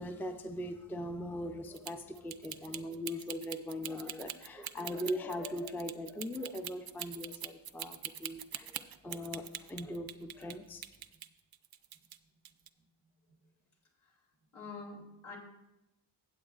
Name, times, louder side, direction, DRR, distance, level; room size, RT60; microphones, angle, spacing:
voice 1, 0.0-10.8, left 1 dB, 5° left, 7 dB, 0.4 m, -40 dB
sound 1, 1.7-10.5 10.8-12.2 12.4-12.7, right 10 dB, 50° right, 0.5 m, -43 dB
voice 2, 14.5-15.4, left 4 dB, 80° left, -3 dB, 2.9 m, -47 dB
15.5 x 7.9 x 2.4 m, 0.94 s
wide cardioid pair, 100°, 47 cm